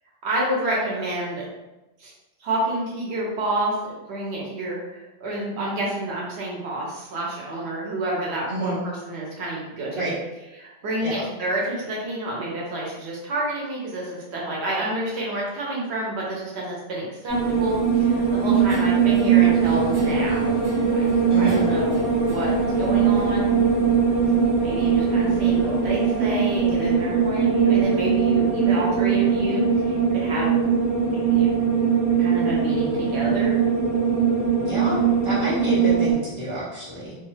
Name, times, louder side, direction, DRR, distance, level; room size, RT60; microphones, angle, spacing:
voice 1, 0.2-1.5 2.0-2.1 2.4-3.8 4.1-10.1 10.5-20.6 20.9-23.5 24.6-30.5 31.1-31.6 32.2-33.6, right 1 dB, 90° right, -4 dB, 1.0 m, -29 dB
voice 2, 8.5-8.8 9.9-10.1 11.0-11.3 21.3-21.7 34.7-37.2, right 1 dB, 30° right, -10 dB, 1.2 m, -29 dB
sound 1, 17.3-36.1, right 6 dB, 15° left, 1.1 m, -21 dB
Guitar, 18.7-24.5, left 1 dB, 60° right, 0.8 m, -38 dB
2.4 x 2.3 x 3.1 m, 1.0 s
omnidirectional pair, 1.1 m